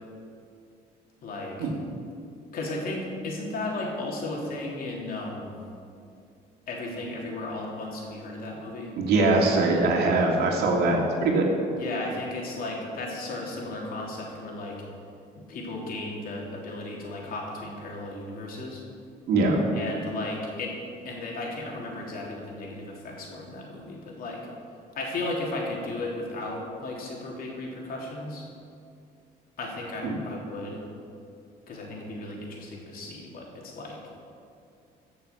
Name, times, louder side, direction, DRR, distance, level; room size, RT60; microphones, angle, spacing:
voice 1, 1.2-1.7 2.5-5.6 6.7-8.9 11.7-14.8 15.4-18.8 19.7-20.8 21.0-24.4 25.0-28.5 29.6-30.8 31.7-34.0, left 2 dB, 60° left, -2 dB, 3.3 m, -35 dB
voice 2, 9.0-11.5 19.3-19.6 30.0-30.1, right 2 dB, 70° right, 0 dB, 2.7 m, -22 dB
15.5 x 6.8 x 7.0 m, 2.5 s
cardioid pair, 110°, 17 cm